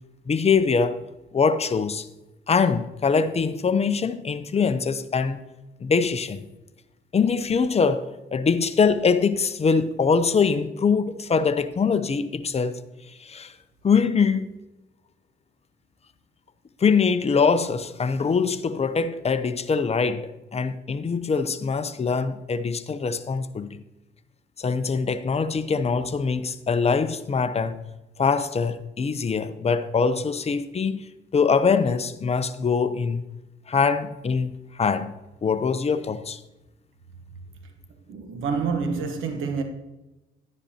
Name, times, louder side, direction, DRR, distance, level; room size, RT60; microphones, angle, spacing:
voice 1, 0.3-1.0 1.3-2.1 2.5-5.4 5.8-6.4 7.1-12.8 13.2-13.5 13.8-14.5 16.8-23.8 24.6-27.8 28.2-31.0 31.3-33.2 33.7-35.1 35.4-36.4, left 5 dB, 30° left, 0.7 m, -23 dB
voice 2, 38.1-39.6, right 5 dB, 80° right, 1.1 m, -27 dB
11.5 x 9.7 x 2.9 m
cardioid pair, 90°, 20 cm